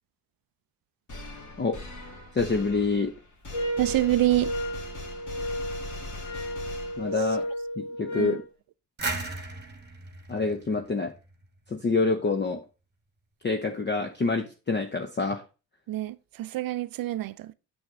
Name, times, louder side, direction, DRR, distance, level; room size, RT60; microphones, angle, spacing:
sound 1, 1.1-7.4, left 2 dB, 40° left, 2.1 m, -41 dB
voice 1, 2.3-3.1 7.0-7.5 7.8-8.4 10.3-11.1 11.7-12.6 13.4-15.4, left 3 dB, 20° left, 0.8 m, -27 dB
sound 2, 3.5-8.5, equal, 65° left, 3.6 m, -33 dB
voice 2, 3.8-4.5 7.2-7.4 8.1-8.4 15.9-17.5, right 15 dB, 45° right, 0.5 m, -27 dB
sound 3, 9.0-11.7, right 2 dB, 20° right, 1.4 m, -36 dB
6.3 x 6.1 x 3.7 m
hypercardioid pair, 55°, 48 cm